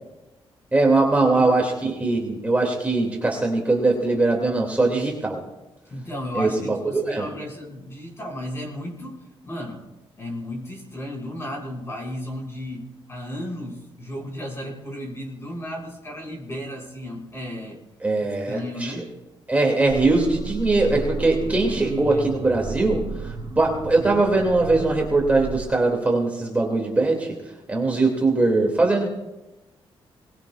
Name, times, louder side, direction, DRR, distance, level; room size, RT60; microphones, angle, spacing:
voice 1, 0.7-5.4 6.3-7.3 18.0-19.0 19.5-23.0 23.6-27.4 27.7-29.1, right 2 dB, 15° right, -1 dB, 2.4 m, -21 dB
voice 2, 5.8-9.9 10.2-17.8 18.2-19.1 21.6-22.4, equal, 25° left, -1 dB, 5.1 m, -34 dB
sound 1, 19.9-25.7, right 4 dB, 30° right, 3.8 m, -33 dB
22.5 x 20.5 x 2.4 m, 1.0 s
wide cardioid pair, 140°, 10 cm